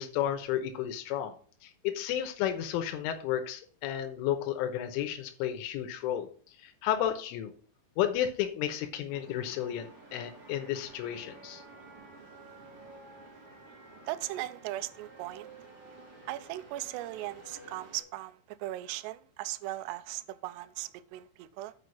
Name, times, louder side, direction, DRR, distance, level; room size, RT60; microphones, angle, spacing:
voice 1, 0.0-1.3 1.6-6.3 6.6-7.5 8.0-11.6, left 11 dB, 85° left, 3.5 m, -32 dB
sound 1, 9.1-18.0, right 2 dB, 35° right, 3.1 m, -52 dB
voice 2, 14.1-15.5 16.3-21.7, right 16 dB, 90° right, 2.4 m, -38 dB
8.0 x 5.7 x 5.6 m
omnidirectional pair, 5.6 m